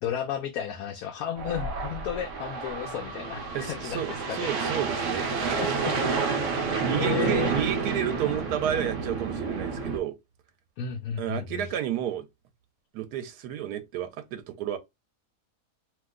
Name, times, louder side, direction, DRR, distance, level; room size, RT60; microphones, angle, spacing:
voice 1, 0.0-4.5 5.6-6.0 6.4-6.7 7.0-7.6 10.8-11.7, left 8 dB, 70° left, 1.0 m, -33 dB
sound 1, 1.4-10.0, right 4 dB, 60° right, 0.9 m, -29 dB
voice 2, 3.5-5.6 6.5-10.2 11.2-12.3 12.9-14.8, right 10 dB, 85° right, 1.2 m, -31 dB
2.9 x 2.0 x 3.5 m
omnidirectional pair, 1.7 m